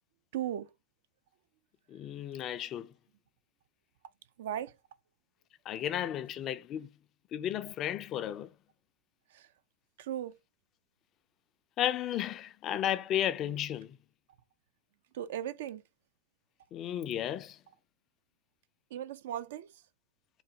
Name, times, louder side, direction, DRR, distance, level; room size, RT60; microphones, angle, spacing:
voice 1, 0.3-0.6 4.4-4.7 10.1-10.3 15.2-15.8 18.9-19.7, right 11 dB, 65° right, 0.3 m, -36 dB
voice 2, 1.9-2.9 5.7-6.9 7.3-8.5 11.8-14.0 16.7-17.6, left 11 dB, 40° left, 0.3 m, -33 dB
3.7 x 2.1 x 2.6 m
hypercardioid pair, 95°, 0 cm